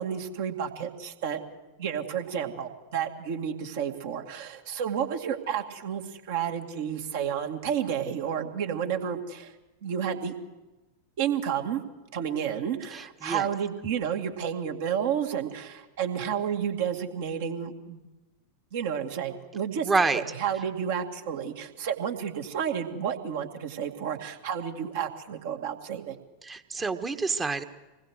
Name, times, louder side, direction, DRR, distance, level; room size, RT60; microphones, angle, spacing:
voice 1, 0.0-1.4 1.8-6.0 6.3-9.5 9.8-10.3 11.2-11.8 12.1-18.0 18.7-26.2, right 8 dB, 55° right, 4 dB, 2.2 m, -31 dB
voice 2, 12.9-13.5 19.8-20.2 26.4-27.6, right 4 dB, 15° right, 8 dB, 1.4 m, -27 dB
26.0 x 20.5 x 6.4 m, 1.1 s
figure-of-eight pair, 90°, 0 cm